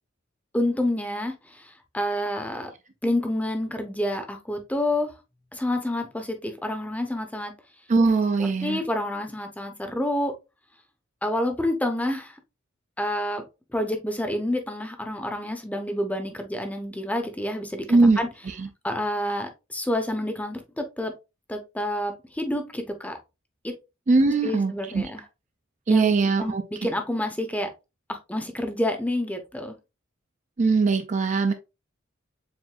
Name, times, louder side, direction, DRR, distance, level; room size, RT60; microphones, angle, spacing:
voice 1, 0.5-2.7 3.0-5.1 5.5-7.5 8.4-10.3 11.2-12.4 13.0-13.4 13.7-18.3 18.8-21.1 21.5-23.2 23.6-23.7 24.2-25.2 25.9-26.1 26.4-27.7 28.1-29.7, left 1 dB, 5° left, 0.7 m, -28 dB
voice 2, 7.9-8.8 17.9-18.7 24.1-25.0 25.9-26.9 30.6-31.5, right 3 dB, 35° right, 0.4 m, -21 dB
7.3 x 2.6 x 2.3 m
head